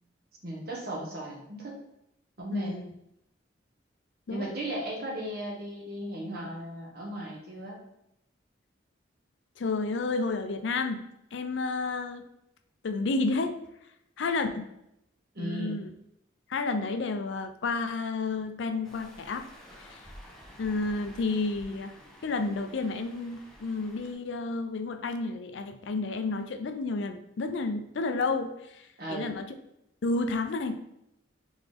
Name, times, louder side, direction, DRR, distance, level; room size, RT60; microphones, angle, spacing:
voice 1, 0.4-1.8 2.4-2.7 4.3-7.8 15.3-15.8 29.0-29.3, right 1 dB, 50° right, -3 dB, 1.3 m, -36 dB
voice 2, 2.5-2.9 4.3-4.4 9.6-11.0 11.3-12.2 12.8-13.5 14.2-14.7 15.4-15.9 16.5-19.5 19.8-20.1 20.6-22.0 22.2-29.5 30.0-30.8, left 3 dB, 70° left, 8 dB, 0.4 m, -31 dB
sound 1, 18.8-24.1, equal, 5° left, 0.7 m, -51 dB
3.9 x 3.6 x 3.4 m, 0.80 s
head